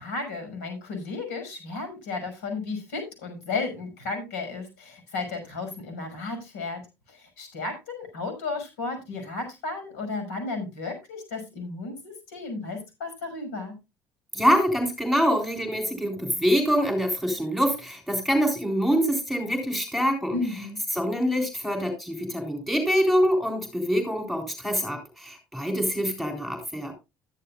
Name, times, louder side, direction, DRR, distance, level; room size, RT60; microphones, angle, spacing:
voice 1, 0.0-6.8 7.1-13.7 20.3-20.8, left 3 dB, 85° left, 6 dB, 5.8 m, -33 dB
voice 2, 14.3-20.4 20.9-26.9, equal, ahead, 3 dB, 3.7 m, -25 dB
13.0 x 11.0 x 2.4 m, 0.25 s
supercardioid pair, 70°, 10 cm